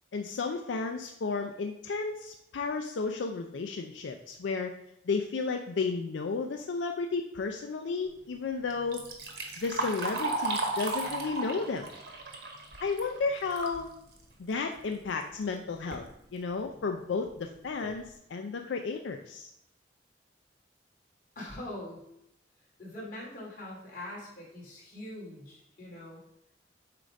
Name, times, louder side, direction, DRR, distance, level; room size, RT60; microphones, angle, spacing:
voice 1, 0.1-4.7 5.1-9.0 9.6-11.9 12.8-13.9 14.4-16.1 16.3-19.5, left 4 dB, 85° left, 5 dB, 0.4 m, -33 dB
Liquid, 8.7-13.8 14.2-14.3 15.2-15.3 15.7-16.1 16.7-16.8 17.3-17.4 17.8-18.0, right 3 dB, 60° right, 1.1 m, -35 dB
voice 2, 21.4-22.0 22.8-26.2, left 1 dB, 45° left, -5 dB, 2.5 m, -43 dB
7.5 x 2.5 x 5.1 m, 0.78 s
head